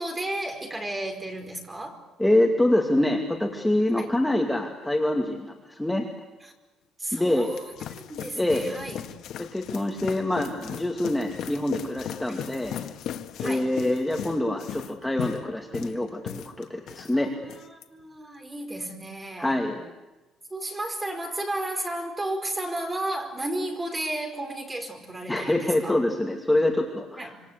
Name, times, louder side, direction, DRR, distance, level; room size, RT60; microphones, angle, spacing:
voice 1, 0.0-2.0 3.9-4.1 6.4-6.5 7.0-9.0 12.3-12.4 13.4-13.7 17.1-19.6 20.5-25.9 27.2-27.4, right 1 dB, 15° right, 4 dB, 4.8 m, -33 dB
voice 2, 2.2-6.1 7.1-7.5 8.4-8.6 9.4-12.8 13.4-17.3 19.4-19.8 25.3-27.4, left 1 dB, 5° left, 2 dB, 2.4 m, -25 dB
sound 1, 7.2-17.1 17.4-17.8, left 10 dB, 60° left, 1.7 m, -37 dB
26.5 x 25.5 x 8.2 m, 1.1 s
cardioid pair, 160°, 0 cm